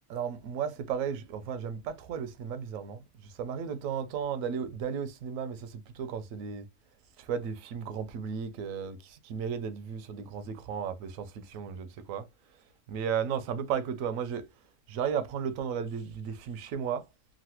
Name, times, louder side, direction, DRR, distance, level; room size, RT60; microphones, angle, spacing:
voice 1, 0.1-3.0 3.4-6.7 7.2-12.3 12.9-14.5 14.9-17.1, right 7 dB, 90° right, 1.0 m, -34 dB
3.1 x 2.5 x 2.8 m
omnidirectional pair, 1.4 m